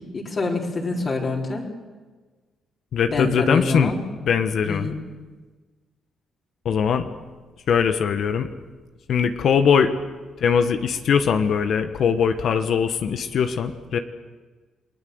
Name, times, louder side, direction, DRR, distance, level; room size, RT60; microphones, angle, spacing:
voice 1, 0.1-1.6 3.1-4.0 4.7-5.0, left 3 dB, 40° left, -1 dB, 3.9 m, -25 dB
voice 2, 2.9-3.9 4.2-4.9 6.6-7.1 7.7-8.5 9.1-9.9 10.4-14.0, left 7 dB, 65° left, 8 dB, 1.3 m, -21 dB
29.0 x 19.0 x 8.0 m, 1.3 s
cardioid pair, 90°, 0 cm